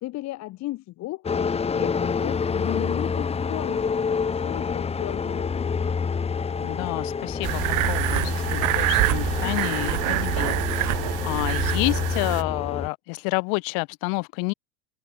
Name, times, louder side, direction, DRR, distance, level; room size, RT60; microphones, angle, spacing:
voice 1, 0.0-5.7, left 17 dB, 40° left, 1.9 m, -35 dB
sound 1, 1.2-12.9, left 5 dB, 15° left, 1.7 m, -27 dB
voice 2, 6.6-10.9 11.2-14.5, left 35 dB, 55° left, 2.1 m, -29 dB
sound 2, 7.4-12.4, right 21 dB, 45° right, 2.7 m, -26 dB
supercardioid pair, 145°, 41 cm